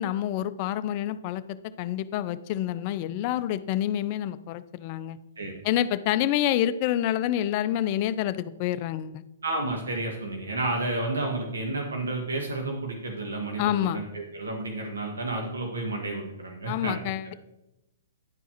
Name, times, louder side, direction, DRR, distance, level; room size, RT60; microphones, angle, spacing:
voice 1, 0.0-1.4 1.8-5.2 5.6-9.2 13.6-14.0 16.7-17.3, left 12 dB, 40° left, 14 dB, 0.4 m, -27 dB
voice 2, 9.4-17.0, right 2 dB, 85° right, 1 dB, 1.4 m, -31 dB
10.5 x 4.6 x 2.9 m, 0.95 s
hypercardioid pair, 135°, 0 cm